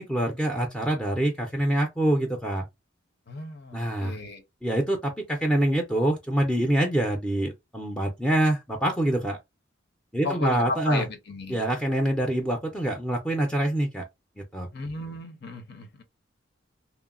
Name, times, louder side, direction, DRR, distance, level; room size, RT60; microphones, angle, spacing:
voice 1, 0.0-2.7 3.7-4.2 4.6-9.4 10.1-11.1 11.5-14.0 14.5-14.7, right 1 dB, 5° left, 0.4 m, -25 dB
voice 2, 3.3-4.4 10.2-11.6 14.7-16.0, left 3 dB, 60° left, 0.8 m, -34 dB
2.9 x 2.1 x 2.4 m
head